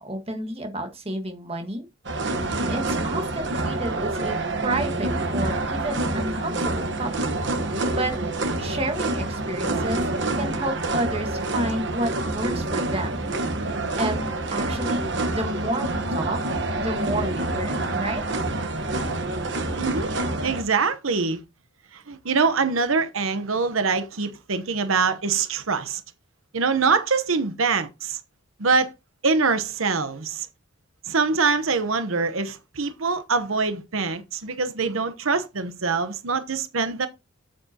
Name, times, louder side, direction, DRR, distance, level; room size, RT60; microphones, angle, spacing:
voice 1, 0.0-1.9 2.7-4.4 4.6-7.1 7.6-8.2 8.6-10.0 10.4-13.3 13.6-16.4 16.8-18.2, right 1 dB, 30° right, 1.6 m, -30 dB
sound 1, 2.0-20.6, right 2 dB, 60° right, 1.3 m, -27 dB
voice 2, 19.7-20.1 20.4-21.4 21.9-26.0 26.5-28.2 28.6-28.9 29.2-30.5 31.0-37.1, right 4 dB, 80° right, 1.0 m, -24 dB
8.5 x 7.9 x 2.9 m
head